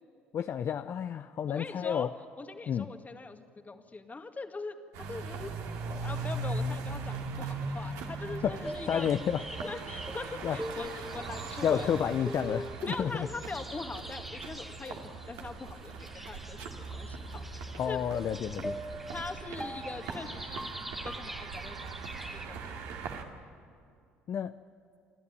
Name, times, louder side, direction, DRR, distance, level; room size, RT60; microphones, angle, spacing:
voice 1, 0.3-2.1 2.7-2.9 8.4-9.4 10.4-10.6 11.6-13.3 17.8-18.8 24.3-24.6, left 8 dB, 50° left, 10 dB, 0.6 m, -30 dB
voice 2, 1.5-2.1 2.4-4.7 5.1-5.6 5.9-9.1 9.6-11.9 12.8-18.0 19.1-22.8, left 3 dB, 25° left, 6 dB, 2.1 m, -42 dB
sound 1, 4.9-23.2, right 3 dB, 70° right, 2.3 m, -40 dB
sound 2, 8.6-22.5, equal, 5° right, 1.6 m, -43 dB
29.5 x 12.5 x 9.9 m, 2.4 s
hypercardioid pair, 55°, 6 cm